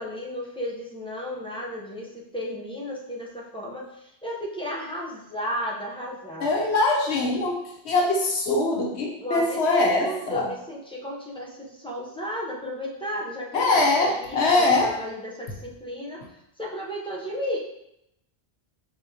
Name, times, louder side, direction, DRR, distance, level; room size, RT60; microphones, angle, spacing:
voice 1, 0.0-6.7 9.2-16.2 16.6-17.6, equal, 5° left, -4 dB, 0.6 m, -34 dB
voice 2, 6.4-7.6 7.8-10.5 13.5-14.9, left 2 dB, 90° left, -1 dB, 1.1 m, -22 dB
5.1 x 3.6 x 2.8 m, 0.81 s
omnidirectional pair, 1.1 m